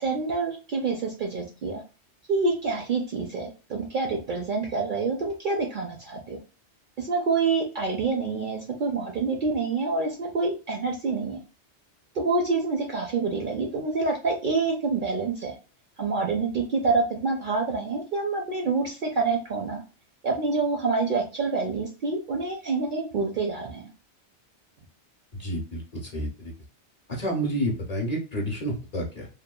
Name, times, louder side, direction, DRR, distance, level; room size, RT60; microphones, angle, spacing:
voice 1, 0.0-1.8 2.3-6.4 7.0-11.4 12.2-15.5 16.0-19.8 20.2-23.8, right 4 dB, 60° right, 1 dB, 0.6 m, -27 dB
voice 2, 25.3-26.5 27.1-29.3, equal, 40° left, -1 dB, 0.7 m, -30 dB
2.9 x 2.2 x 2.2 m, 0.34 s
omnidirectional pair, 1.2 m